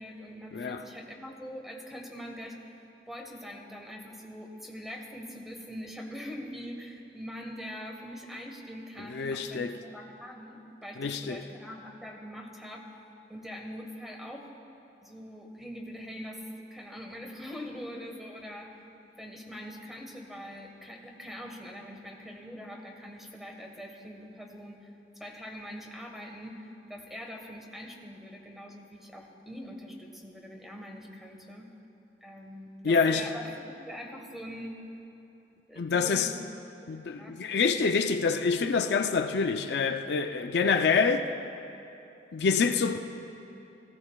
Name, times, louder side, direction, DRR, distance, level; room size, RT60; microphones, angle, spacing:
voice 1, 0.0-2.7 3.1-13.0 13.3-14.5 15.0-16.4 16.7-18.8 19.2-31.7 32.2-34.8 35.7-36.3 36.8-38.0, equal, ahead, 1.3 m, -43 dB
voice 2, 9.1-9.8 11.0-11.4 32.8-33.3 35.8-36.3 36.9-41.3 42.3-43.0, left 5 dB, 65° left, 0.4 m, -26 dB
18.5 x 15.5 x 2.3 m
head